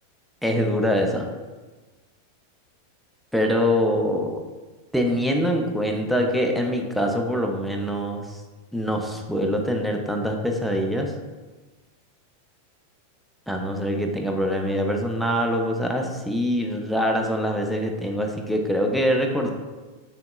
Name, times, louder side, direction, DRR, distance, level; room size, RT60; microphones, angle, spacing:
voice 1, 0.4-1.3 3.3-4.4 4.9-8.4 8.7-11.1 13.5-19.5, equal, ahead, 2 dB, 0.4 m, -24 dB
3.6 x 2.8 x 2.3 m, 1.3 s
figure-of-eight pair, 90°, 0 cm